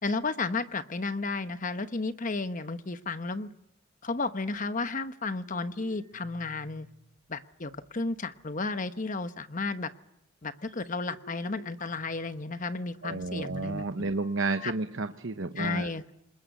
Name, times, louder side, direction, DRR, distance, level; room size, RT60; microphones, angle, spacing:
voice 1, 0.0-3.5 4.0-6.9 7.3-9.9 10.4-13.8 14.6-14.7 15.6-16.1, left 3 dB, 35° left, 11 dB, 1.0 m, -33 dB
sound 1, 5.4-7.2 7.5-8.5 8.9-9.0 9.6-9.8 10.5-13.1 14.2-14.7, left 1 dB, 80° left, 3.5 m, -55 dB
voice 2, 13.0-15.9, right 3 dB, 55° right, 8 dB, 0.9 m, -31 dB
28.0 x 20.5 x 8.3 m, 0.84 s
head